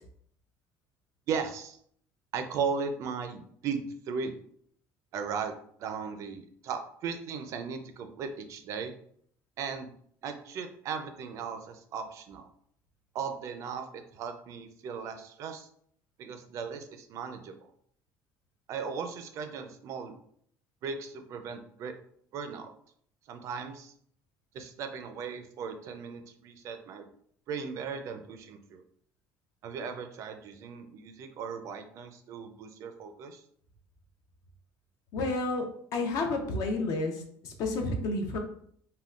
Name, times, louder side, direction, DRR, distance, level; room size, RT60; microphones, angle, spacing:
voice 1, 1.3-1.8 2.3-4.3 5.1-5.5 5.8-8.9 9.6-9.9 10.2-12.5 13.1-15.7 16.2-17.7 18.7-20.2 20.8-21.9 22.3-22.7 23.3-23.9 24.5-27.1 27.5-28.8 29.6-33.4, right 6 dB, 55° right, 7 dB, 0.4 m, -37 dB
voice 2, 35.1-35.7 35.9-38.4, left 2 dB, 60° left, 4 dB, 0.6 m, -30 dB
3.5 x 2.2 x 2.3 m, 0.64 s
cardioid pair, 135°, 6 cm